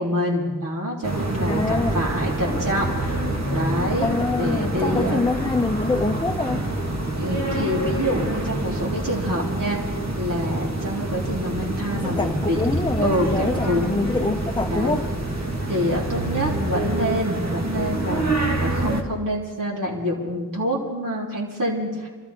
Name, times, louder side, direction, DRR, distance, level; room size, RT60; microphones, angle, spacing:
voice 1, 0.0-3.2 3.5-4.1 4.4-5.2 7.2-9.8 10.2-12.6 13.0-14.0 14.7-15.0 15.7-18.3 18.6-22.1, equal, 75° right, -4 dB, 3.7 m, -26 dB
sound 1, 1.0-19.0, right 1 dB, 55° right, 1.9 m, -26 dB
voice 2, 1.5-2.0 2.5-2.6 4.0-6.7 11.9-15.1, left 3 dB, 15° left, 6 dB, 0.6 m, -25 dB
26.5 x 14.0 x 3.7 m, 1.4 s
wide cardioid pair, 60°, 33 cm